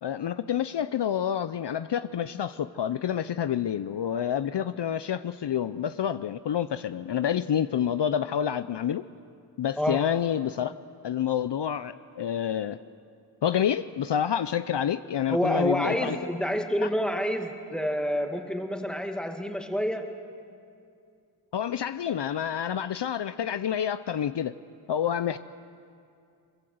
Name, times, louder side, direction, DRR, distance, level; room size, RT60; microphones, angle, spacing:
voice 1, 0.0-9.0 9.6-10.7 11.0-12.8 13.4-16.2 21.5-24.6 24.9-25.4, left 9 dB, 60° left, 12 dB, 0.6 m, -28 dB
voice 2, 15.3-20.1, equal, ahead, 4 dB, 2.1 m, -28 dB
22.5 x 22.5 x 7.9 m, 2.4 s
wide cardioid pair, 85°, 47 cm